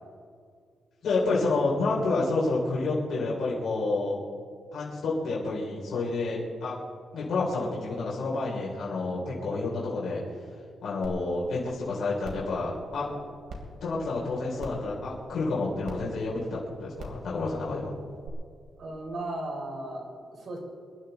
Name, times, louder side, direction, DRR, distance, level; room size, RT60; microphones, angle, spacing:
voice 1, 1.0-4.2 4.7-6.8 7.1-10.2 10.8-13.1 13.8-17.9, left 3 dB, 70° left, -5 dB, 2.9 m, -29 dB
sound 1, 11.0-11.1 11.6-11.7 12.2-12.5 13.5-13.6 14.6-14.9 15.8-15.9 17.0-17.2 18.2-18.3, right 2 dB, 65° right, 3.0 m, -40 dB
voice 2, 18.8-20.6, right 1 dB, 50° right, 0 dB, 3.8 m, -36 dB
24.0 x 11.5 x 3.9 m, 2.2 s
wide cardioid pair, 140°, 0 cm